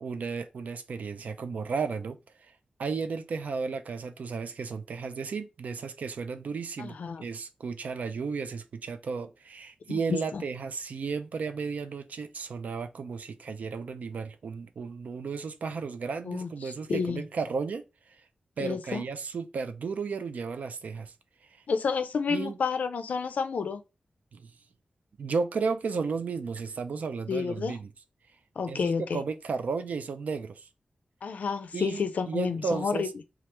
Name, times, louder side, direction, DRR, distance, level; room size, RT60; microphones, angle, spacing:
voice 1, 0.0-2.5 2.8-6.9 7.2-18.2 18.6-21.1 21.5-21.6 22.3-22.6 24.3-24.5 25.2-27.9 28.7-30.7 31.7-33.1, right 5 dB, 75° right, 0.4 m, -34 dB
voice 2, 6.8-7.2 9.9-10.4 16.2-17.2 18.6-19.0 21.7-23.8 27.3-27.8 28.6-29.2 31.2-33.1, left 5 dB, 85° left, 0.4 m, -30 dB
2.9 x 2.3 x 3.2 m
wide cardioid pair, 130°, 3 cm